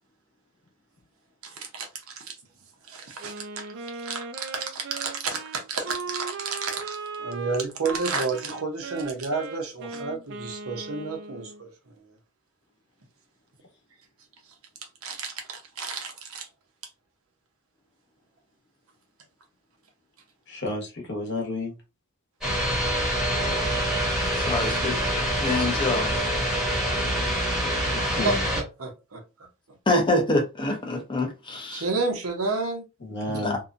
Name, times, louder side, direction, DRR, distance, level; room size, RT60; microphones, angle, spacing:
voice 1, 1.4-2.4 2.9-3.7 4.0-11.7 15.0-16.5 28.2-29.2 31.7-32.8, right 4 dB, 75° right, 0.9 m, -31 dB
Wind instrument woodwind instrument, 3.2-11.6, right 4 dB, 50° right, 0.3 m, -38 dB
voice 2, 20.5-21.8 27.9-28.4 33.0-33.6, left 2 dB, 55° left, 1.1 m, -31 dB
sound 1, 22.4-28.6, equal, 5° right, 1.0 m, -25 dB
voice 3, 24.3-25.0 25.4-26.1 29.9-31.8 33.4-33.5, left 2 dB, 20° left, 0.7 m, -25 dB
2.7 x 2.3 x 2.5 m
head